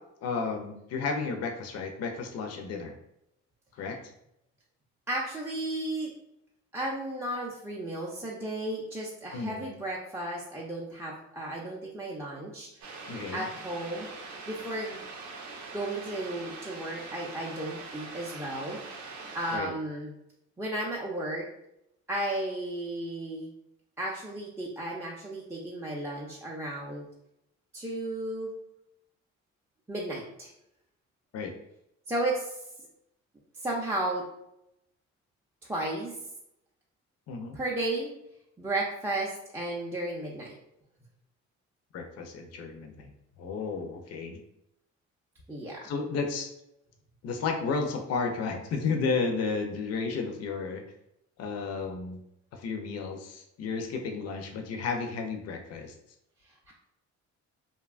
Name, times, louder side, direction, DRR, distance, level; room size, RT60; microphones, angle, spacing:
voice 1, 0.2-2.9 3.7-4.0 9.3-9.7 13.1-13.5 19.5-19.7 31.3-31.5 37.3-37.6 41.9-43.1 43.4-44.4 45.8-46.5 47.2-50.8 51.4-52.2 52.5-55.9, left 4 dB, 55° left, 4 dB, 0.5 m, -32 dB
voice 2, 5.1-6.1 6.7-14.1 14.5-15.1 15.7-18.8 19.3-20.1 20.6-21.5 22.1-23.5 24.0-27.1 27.7-28.5 29.9-30.5 32.1-32.6 33.6-34.2 35.6-36.2 37.5-38.1 38.6-40.6 45.5-45.8 56.7-56.8, right 1 dB, 10° right, -4 dB, 0.4 m, -34 dB
sound 1, 12.8-19.6, right 3 dB, 70° right, 0.6 m, -43 dB
2.7 x 2.2 x 2.4 m, 0.81 s
cardioid pair, 90°, 30 cm